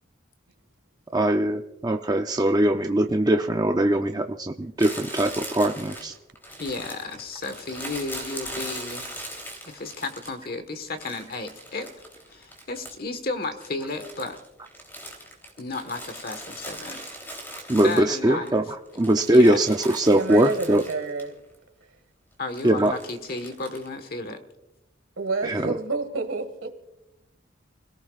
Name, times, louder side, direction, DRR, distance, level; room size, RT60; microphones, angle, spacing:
voice 1, 1.1-6.1 17.7-18.6 19.0-20.8 22.6-22.9 25.5-25.7, right 1 dB, 20° right, 0.5 m, -21 dB
Crumpling crinkling, 4.8-10.5 11.0-13.2 13.4-18.5 18.9-21.3 21.5-21.6 22.5-23.9, equal, 10° left, 3.3 m, -40 dB
voice 2, 6.6-9.1 9.6-11.9 12.3-14.4 15.6-17.0 17.7-18.5 19.3-19.6 22.4-24.4, left 3 dB, 50° left, 1.4 m, -33 dB
voice 3, 20.1-21.4 25.2-26.7, right 3 dB, 80° right, 1.9 m, -29 dB
30.0 x 17.5 x 2.4 m
head